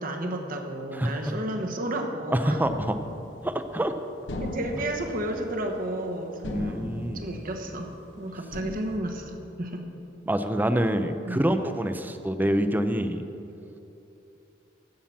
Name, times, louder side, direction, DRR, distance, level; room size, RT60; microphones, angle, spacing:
voice 1, 0.0-2.6 4.4-6.7 7.1-7.9 8.2-9.8 11.3-11.4, right 1 dB, 50° right, 3 dB, 1.2 m, -32 dB
voice 2, 2.3-3.0 3.4-3.9 6.5-7.2 10.3-13.2, right 1 dB, 10° right, 9 dB, 0.5 m, -26 dB
sound 1, 2.6-3.9 4.3-6.2 6.4-8.1 8.5-9.0, left 1 dB, 70° left, 1.0 m, -37 dB
14.5 x 5.8 x 7.2 m, 2.9 s
head